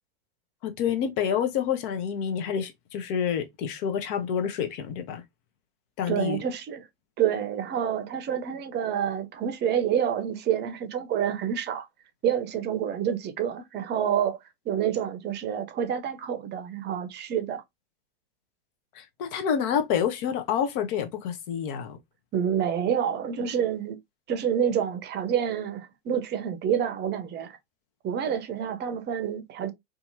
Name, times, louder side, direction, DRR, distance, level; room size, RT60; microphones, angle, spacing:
voice 1, 0.6-5.2 6.0-6.4 18.9-22.0, left 8 dB, 55° left, 0.8 m, -28 dB
voice 2, 6.1-6.8 7.2-11.9 12.2-14.4 14.7-17.6 22.3-24.0 24.3-27.6 28.0-29.7, right 9 dB, 30° right, 0.6 m, -28 dB
2.8 x 2.4 x 2.6 m
hypercardioid pair, 90°, 32 cm